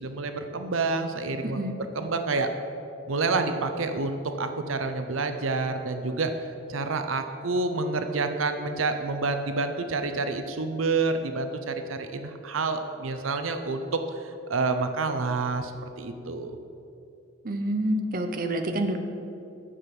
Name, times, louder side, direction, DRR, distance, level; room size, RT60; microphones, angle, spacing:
voice 1, 0.0-1.6 1.9-2.5 3.1-6.3 6.7-15.7 16.0-16.6, right 3 dB, 80° right, 7 dB, 0.7 m, -28 dB
voice 2, 1.4-1.8 17.4-19.0, right 1 dB, 45° right, 5 dB, 0.7 m, -28 dB
9.9 x 7.1 x 6.0 m, 2.7 s
head